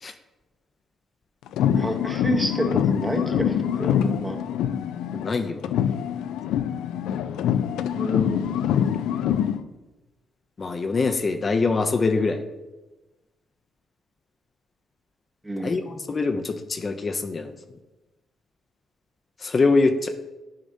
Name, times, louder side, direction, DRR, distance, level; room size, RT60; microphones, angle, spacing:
sound 1, 1.5-5.3 5.6-9.6, left 9 dB, 90° left, 0.3 m, -24 dB
voice 1, 1.8-4.4 8.0-8.5 15.4-15.8, equal, 15° right, 3 dB, 1.0 m, -29 dB
voice 2, 5.1-5.7 6.5-6.6 10.6-12.4 15.6-17.5 19.4-20.1, left 3 dB, 35° left, 5 dB, 0.5 m, -24 dB
11.0 x 4.9 x 2.7 m, 1.1 s
cardioid pair, 85°, 0 cm